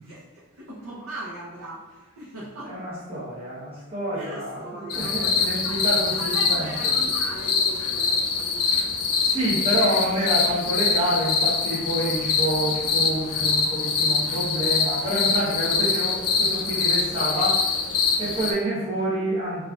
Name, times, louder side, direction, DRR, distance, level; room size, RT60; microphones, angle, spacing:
voice 1, 0.0-2.8 3.1-3.2 4.1-8.7, right 1 dB, 75° right, -7 dB, 0.7 m, -39 dB
voice 2, 2.6-6.9 9.2-17.8 18.2-19.6, right 1 dB, 25° right, -7 dB, 0.9 m, -28 dB
sound 1, 4.9-18.5, left 5 dB, 85° left, 0.4 m, -24 dB
4.0 x 2.4 x 2.3 m, 1.1 s
head